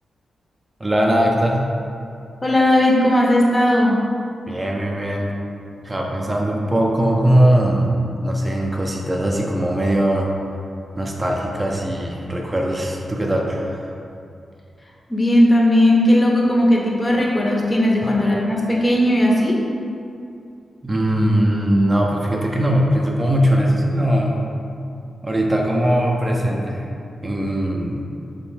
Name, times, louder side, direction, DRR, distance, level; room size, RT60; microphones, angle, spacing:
voice 1, 0.8-1.6 4.5-5.3 5.8-10.3 11.0-13.8 18.0-18.1 20.8-24.3 25.2-26.8 27.2-28.1, right 1 dB, 25° right, -1 dB, 0.4 m, -20 dB
voice 2, 2.4-4.0 15.1-19.6, left 1 dB, 30° left, -3 dB, 0.5 m, -16 dB
2.6 x 2.1 x 3.0 m, 2.5 s
supercardioid pair, 45°, 0 cm